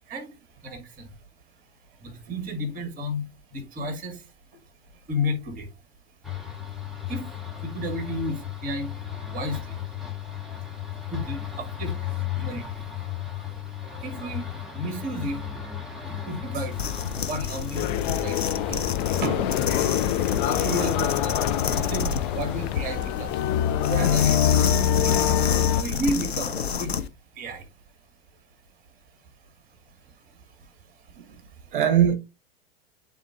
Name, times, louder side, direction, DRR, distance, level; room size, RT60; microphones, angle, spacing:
voice 1, 0.6-1.1 2.0-3.2 3.5-4.2 5.1-5.7 7.1-7.2 7.6-8.9 9.3-9.8 11.1-11.9 12.4-12.8 14.0-15.4 16.3-16.8 17.3-17.9 18.2-18.4 20.4-21.4 21.8-23.4 23.9-24.4 25.0-25.2 25.8-27.0 27.4-27.7, equal, 25° right, 2.1 m, -32 dB
sound 1, 6.2-22.8, left 10 dB, ahead, 1.7 m, -35 dB
sound 2, 16.7-27.1, left 6 dB, 85° left, 0.6 m, -30 dB
sound 3, 17.7-25.8, left 10 dB, 45° left, 0.6 m, -25 dB
voice 2, 31.7-32.1, right 9 dB, 55° right, 0.9 m, -22 dB
11.0 x 3.8 x 2.3 m
figure-of-eight pair, 90°, 31 cm